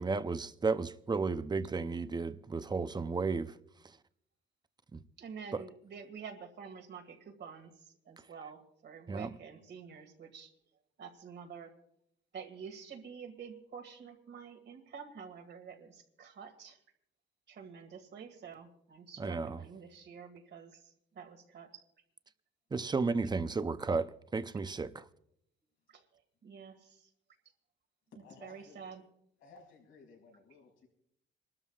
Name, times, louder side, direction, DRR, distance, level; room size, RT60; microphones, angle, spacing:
voice 1, 0.0-3.5 4.9-5.0 9.1-9.3 19.2-19.6 22.7-25.1, right 4 dB, 20° right, 0.7 m, -33 dB
voice 2, 5.2-10.5 11.0-11.7 12.3-16.8 17.5-21.8 25.9-27.1 28.4-29.0, right 6 dB, 60° right, 2.1 m, -48 dB
voice 3, 28.2-28.8 29.4-30.9, left 4 dB, 90° left, 5.3 m, -57 dB
27.5 x 13.0 x 2.4 m
cardioid pair, 90°, 20 cm